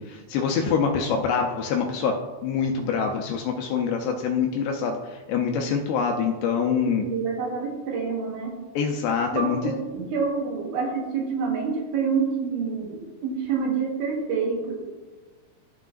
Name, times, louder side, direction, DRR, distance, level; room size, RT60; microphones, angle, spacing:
voice 1, 0.0-2.1 2.4-7.0 8.8-9.7, left 6 dB, 85° left, 2 dB, 2.5 m, -25 dB
voice 2, 7.0-8.6 9.3-14.7, right 5 dB, 75° right, 0 dB, 3.6 m, -27 dB
14.5 x 5.9 x 2.5 m, 1.2 s
omnidirectional pair, 5.4 m